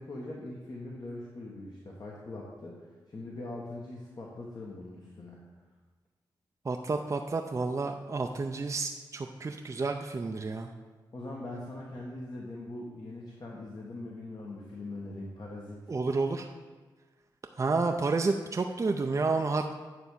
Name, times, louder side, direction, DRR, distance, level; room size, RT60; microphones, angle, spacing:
voice 1, 0.0-5.4 11.1-15.8, left 2 dB, 50° left, -3 dB, 1.4 m, -41 dB
voice 2, 6.6-10.7 15.9-16.5 17.6-19.7, right 3 dB, 35° right, 4 dB, 0.5 m, -30 dB
9.3 x 3.5 x 6.8 m, 1.3 s
cardioid pair, 50°, 9 cm